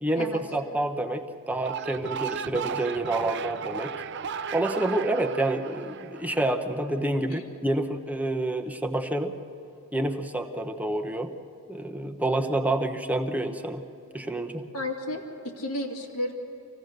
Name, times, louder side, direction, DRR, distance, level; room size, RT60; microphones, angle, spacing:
voice 1, 0.0-3.9 4.5-9.3 9.9-11.3 11.7-13.8 14.1-14.6, right 1 dB, 5° right, 5 dB, 0.9 m, -28 dB
sound 1, 1.5-6.8, right 6 dB, 50° right, 0.5 m, -35 dB
voice 2, 14.7-16.3, left 1 dB, 85° left, -1 dB, 2.3 m, -32 dB
25.5 x 16.5 x 6.7 m, 2.9 s
head